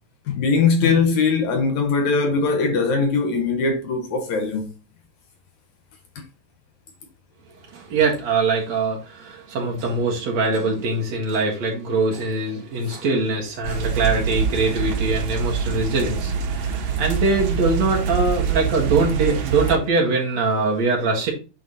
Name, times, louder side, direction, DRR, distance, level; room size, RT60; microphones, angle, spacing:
voice 1, 0.3-4.7, left 4 dB, 65° left, 2.2 m, -20 dB
voice 2, 7.7-21.3, right 3 dB, 55° right, 2.7 m, -22 dB
sound 1, 13.6-19.8, right 6 dB, 85° right, 3.0 m, -25 dB
8.9 x 4.1 x 4.0 m
omnidirectional pair, 3.9 m